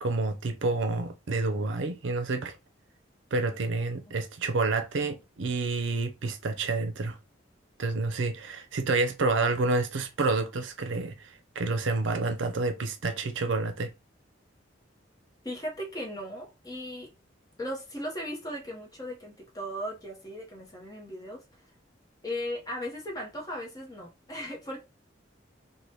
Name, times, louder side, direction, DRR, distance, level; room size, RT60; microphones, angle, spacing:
voice 1, 0.0-2.6 3.3-7.2 7.8-13.9, right 3 dB, 75° right, 0.5 m, -29 dB
voice 2, 15.4-17.1 17.6-21.4 22.2-24.8, equal, 20° left, 0.8 m, -37 dB
2.8 x 2.2 x 3.2 m
head